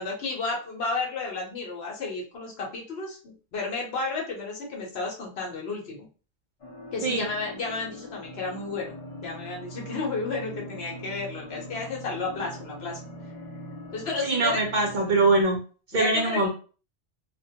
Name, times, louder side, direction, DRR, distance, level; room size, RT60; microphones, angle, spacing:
voice 1, 0.0-6.1 6.9-8.9 9.2-13.0 13.9-14.6 15.9-16.4, left 3 dB, 75° left, 0 dB, 1.1 m, -32 dB
sound 1, 6.6-15.4, equal, 40° left, 0.7 m, -42 dB
voice 2, 14.2-15.6 15.9-16.5, right 2 dB, 55° right, 1 dB, 0.6 m, -23 dB
2.4 x 2.2 x 2.7 m, 0.37 s
omnidirectional pair, 1.1 m